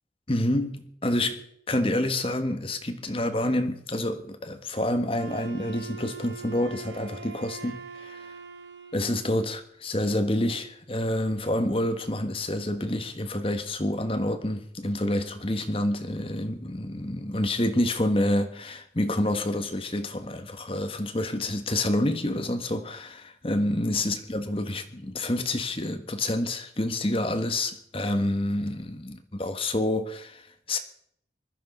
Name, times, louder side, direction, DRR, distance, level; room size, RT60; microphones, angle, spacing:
voice 1, 0.3-1.4 1.7-8.3 8.9-30.8, left 1 dB, 30° left, 1.4 m, -28 dB
Wind instrument woodwind instrument, 5.2-9.3, right 4 dB, 75° right, 1.3 m, -42 dB
20.5 x 12.5 x 5.4 m
head